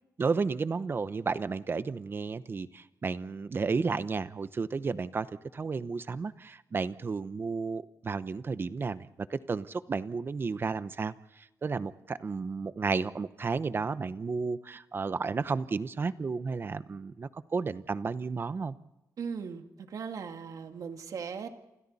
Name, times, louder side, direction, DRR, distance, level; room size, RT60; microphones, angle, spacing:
voice 1, 0.2-5.3 5.5-18.8, right 4 dB, 35° right, 14 dB, 0.8 m, -32 dB
voice 2, 19.2-21.5, right 6 dB, 60° right, 5 dB, 2.2 m, -38 dB
29.0 x 27.5 x 4.2 m, 0.95 s
wide cardioid pair, 145°, 7 cm